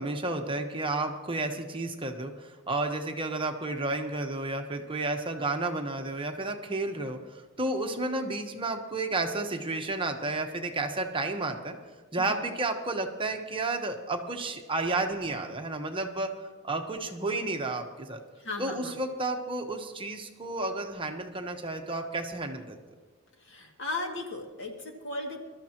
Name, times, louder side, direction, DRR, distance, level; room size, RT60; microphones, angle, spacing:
voice 1, 0.0-11.7 12.1-16.3 16.6-18.2 18.6-22.8, right 2 dB, 25° right, 4 dB, 1.2 m, -32 dB
voice 2, 12.2-12.5 18.4-19.0 23.4-25.4, left 2 dB, 65° left, 1 dB, 2.3 m, -36 dB
23.5 x 13.0 x 3.0 m, 1.3 s
head